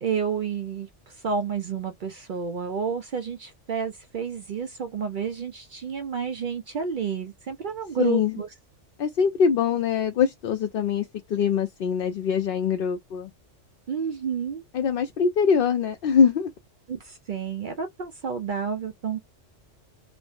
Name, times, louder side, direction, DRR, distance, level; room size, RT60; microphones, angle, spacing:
voice 1, 0.0-8.5 13.9-14.6 16.9-19.2, right 6 dB, 60° right, 0.6 m, -30 dB
voice 2, 8.0-8.4 9.0-13.3 14.7-16.5, left 6 dB, 60° left, 0.6 m, -23 dB
3.2 x 2.1 x 2.4 m
omnidirectional pair, 1.2 m